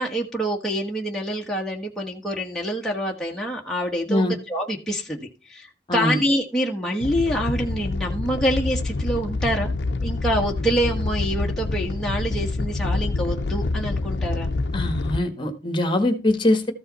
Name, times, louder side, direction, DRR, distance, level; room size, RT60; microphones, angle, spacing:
voice 1, 0.0-9.7 10.0-14.5, equal, 5° left, -2 dB, 1.4 m, -26 dB
voice 2, 5.9-6.2 14.7-16.7, left 1 dB, 25° left, 7 dB, 1.6 m, -22 dB
Animal, 7.0-15.2, left 3 dB, 70° left, 0.6 m, -26 dB
14.0 x 5.4 x 4.1 m, 0.33 s
head